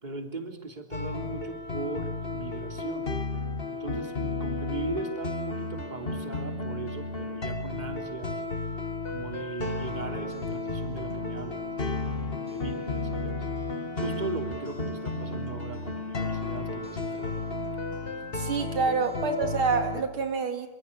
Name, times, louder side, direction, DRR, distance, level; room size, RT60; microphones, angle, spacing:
voice 1, 0.0-3.1 3.7-8.4 9.1-12.0 12.4-13.5 14.0-17.4, right 3 dB, 20° right, 4 dB, 3.4 m, -38 dB
sound 1, 0.9-20.0, left 3 dB, 25° left, 2.0 m, -33 dB
voice 2, 18.3-20.7, right 5 dB, 75° right, 6 dB, 2.9 m, -27 dB
27.5 x 25.5 x 8.5 m, 0.92 s
omnidirectional pair, 2.3 m